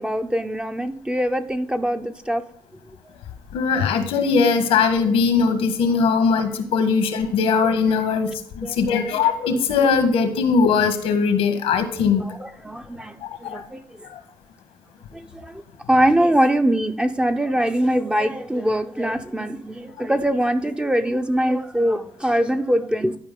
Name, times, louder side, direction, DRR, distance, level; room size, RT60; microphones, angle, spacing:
voice 1, 0.0-2.4 8.6-9.1 12.2-13.8 15.1-15.6 15.9-23.2, right 1 dB, 10° right, 7 dB, 0.8 m, -23 dB
voice 2, 3.5-8.3 8.6-12.2 13.4-13.6 14.1-14.2, left 5 dB, 90° left, 7 dB, 1.5 m, -20 dB
12.0 x 4.8 x 3.8 m, 0.64 s
supercardioid pair, 70°, 9 cm